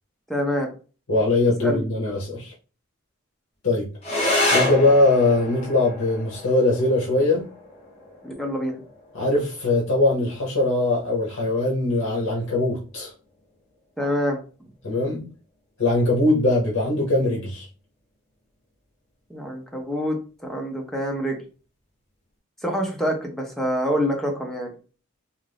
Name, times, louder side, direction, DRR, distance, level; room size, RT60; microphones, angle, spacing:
voice 1, 0.3-0.7 1.6-1.8 8.2-8.8 14.0-14.4 19.3-21.4 22.6-24.7, equal, ahead, 0.5 m, -26 dB
voice 2, 1.1-2.5 3.6-3.9 4.5-7.5 9.1-13.1 14.8-15.3 15.8-17.7, left 2 dB, 60° left, 0.8 m, -21 dB
sound 1, 4.0-13.0, left 2 dB, 30° left, 1.0 m, -30 dB
2.5 x 2.3 x 3.3 m
head